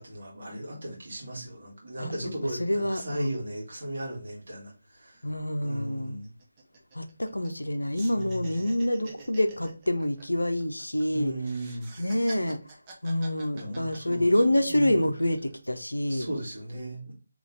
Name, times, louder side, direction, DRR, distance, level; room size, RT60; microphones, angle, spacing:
voice 1, 0.0-5.2 5.6-6.3 8.1-8.4 11.1-11.9 13.5-14.3 14.7-15.1 16.1-17.1, right 1 dB, 55° right, 1.7 m, -36 dB
voice 2, 2.6-3.3 5.2-6.2 7.0-11.3 12.0-12.6 13.0-16.3, left 1 dB, 80° left, 0.6 m, -27 dB
sound 1, 5.1-5.2 5.5-5.7 6.0-7.7 7.9-11.0 11.4-14.5 15.0-15.6, right 3 dB, 20° right, 0.7 m, -48 dB
4.0 x 3.1 x 3.2 m
figure-of-eight pair, 150°, 0 cm